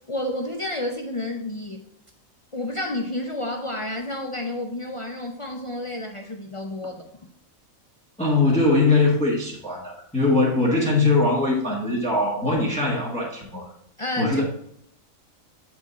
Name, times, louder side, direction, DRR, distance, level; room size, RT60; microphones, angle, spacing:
voice 1, 0.1-1.9 2.5-7.1 14.0-14.4, left 1 dB, 50° left, 3 dB, 0.3 m, -30 dB
voice 2, 8.2-13.7 14.2-14.4, left 3 dB, 5° left, -4 dB, 1.3 m, -21 dB
8.3 x 4.4 x 4.0 m, 0.73 s
omnidirectional pair, 1.4 m